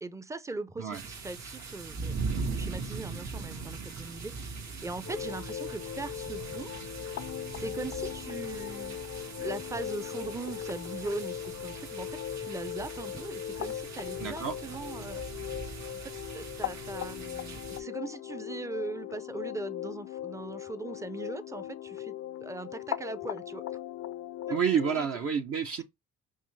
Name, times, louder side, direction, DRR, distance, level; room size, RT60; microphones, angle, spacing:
voice 1, 0.0-2.2 2.5-6.7 7.6-9.0 9.4-15.2 16.0-23.6 24.5-24.6 24.9-25.1, right 3 dB, 10° right, 0.5 m, -40 dB
sound 1, 0.9-17.8, right 4 dB, 65° right, 1.6 m, -40 dB
sound 2, 5.0-25.0, left 12 dB, 55° left, 0.5 m, -39 dB
voice 2, 14.2-14.6 24.5-25.8, right 7 dB, 50° right, 0.8 m, -29 dB
5.5 x 2.0 x 3.1 m
cardioid pair, 90°, 30 cm